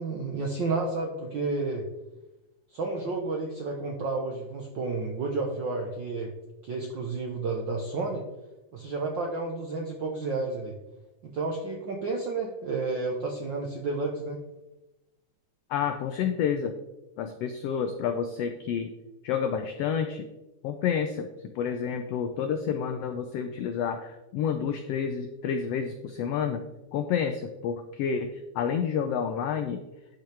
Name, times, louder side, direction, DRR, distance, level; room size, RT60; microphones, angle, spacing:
voice 1, 0.0-1.8 2.7-6.3 6.6-8.2 8.7-10.8 11.2-14.4, right 3 dB, 70° right, 1 dB, 1.1 m, -31 dB
voice 2, 15.7-16.8 17.2-18.9 19.2-20.3 20.6-29.8, left 7 dB, 85° left, 8 dB, 1.4 m, -29 dB
12.0 x 5.7 x 3.4 m, 1.0 s
omnidirectional pair, 3.5 m